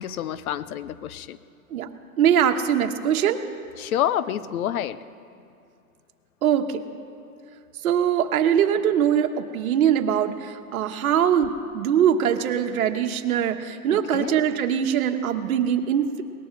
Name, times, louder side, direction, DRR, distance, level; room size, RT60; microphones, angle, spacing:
voice 1, 0.0-1.4 3.8-5.0 13.9-14.4, left 11 dB, 75° left, 15 dB, 0.8 m, -28 dB
voice 2, 2.2-3.4 6.4-6.8 7.8-16.2, right 9 dB, 70° right, 5 dB, 1.4 m, -22 dB
22.0 x 19.5 x 3.3 m, 2.5 s
hypercardioid pair, 140°, 44 cm